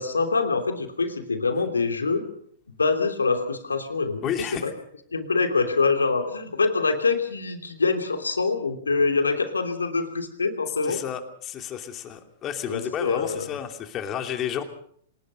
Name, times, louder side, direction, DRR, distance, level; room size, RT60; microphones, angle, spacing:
voice 1, 0.0-2.2 2.8-4.3 4.6-4.7 5.1-11.0 12.7-13.5, left 4 dB, 85° left, 6 dB, 3.0 m, -25 dB
voice 2, 4.2-4.7 10.8-14.6, left 9 dB, 30° left, 6 dB, 2.8 m, -31 dB
26.5 x 19.5 x 5.6 m, 0.64 s
figure-of-eight pair, 105°, 0 cm